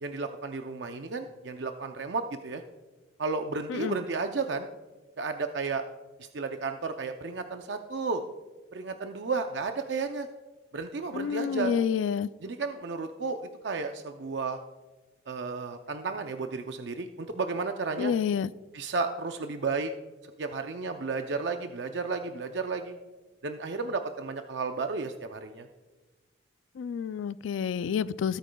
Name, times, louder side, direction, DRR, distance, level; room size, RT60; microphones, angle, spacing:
voice 1, 0.0-2.6 3.2-4.7 5.2-5.8 6.2-8.2 8.7-10.3 10.7-11.7 12.4-13.4 13.6-14.6 15.3-18.1 18.7-19.9 20.4-23.0 23.4-25.7, right 4 dB, 65° right, 6 dB, 0.5 m, -33 dB
voice 2, 11.1-12.3 18.0-18.5 26.8-28.4, left 7 dB, 85° left, 17 dB, 0.3 m, -29 dB
18.0 x 9.0 x 2.3 m, 1.3 s
head